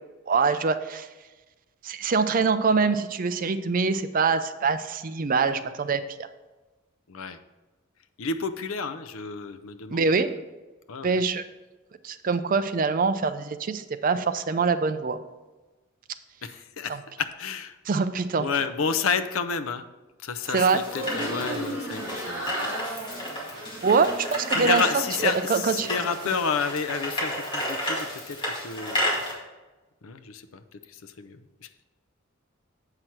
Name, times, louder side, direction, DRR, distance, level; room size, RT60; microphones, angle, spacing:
voice 1, 0.3-1.1 1.8-6.0 9.9-10.3 11.0-11.4 12.0-15.2 17.9-18.5 20.5-20.8 23.5-24.8 25.2-25.9, right 4 dB, 40° right, 11 dB, 0.4 m, -24 dB
voice 2, 7.1-7.4 8.2-10.2 10.9-11.2 16.4-17.8 18.4-19.8 20.2-22.7 23.3-24.0 24.5-29.1 30.0-31.7, left 5 dB, 80° left, 11 dB, 0.6 m, -31 dB
sound 1, 20.4-29.3, left 1 dB, 25° left, 2.0 m, -32 dB
sound 2, 20.8-25.2 25.6-26.3, equal, 15° right, 2.1 m, -35 dB
7.8 x 5.8 x 4.5 m, 1.2 s
head